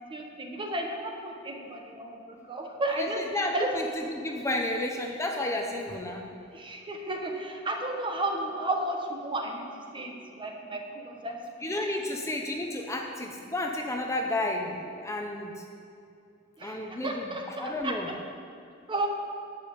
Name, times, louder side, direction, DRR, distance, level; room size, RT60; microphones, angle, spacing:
voice 1, 0.1-3.2 3.5-3.7 6.5-11.4 16.6-17.9 18.9-19.1, right 2 dB, 25° right, 2 dB, 1.2 m, -33 dB
voice 2, 3.0-6.2 11.6-15.6 16.6-18.1, left 1 dB, 15° left, 1 dB, 0.7 m, -32 dB
11.5 x 5.5 x 8.6 m, 2.4 s
head